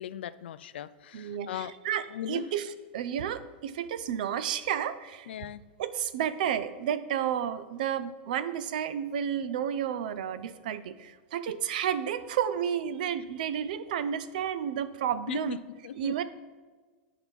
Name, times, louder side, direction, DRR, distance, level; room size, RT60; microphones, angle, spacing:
voice 1, 0.0-1.7 2.1-2.5 5.3-5.6 11.5-11.6 15.3-16.2, left 10 dB, 85° left, 15 dB, 0.4 m, -38 dB
voice 2, 1.1-5.3 5.8-15.6 16.0-16.2, right 9 dB, 50° right, 13 dB, 0.5 m, -31 dB
9.9 x 4.8 x 5.3 m, 1.4 s
supercardioid pair, 175°, 6 cm